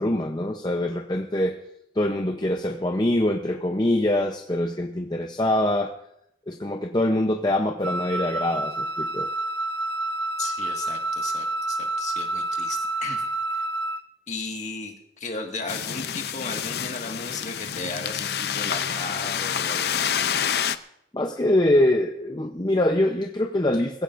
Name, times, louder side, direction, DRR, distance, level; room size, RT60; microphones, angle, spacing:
voice 1, 0.0-1.5 2.0-5.9 6.5-9.3 21.1-24.0, left 1 dB, 25° left, 3 dB, 0.7 m, -24 dB
Wind instrument woodwind instrument, 7.8-14.1, right 2 dB, 80° right, 0.7 m, -28 dB
voice 2, 10.4-13.2 13.5-13.6 14.3-20.2, left 3 dB, 40° left, 2 dB, 1.8 m, -35 dB
sound 1, 15.7-20.8, left 8 dB, 65° left, 0.5 m, -28 dB
21.5 x 16.0 x 2.6 m, 0.77 s
head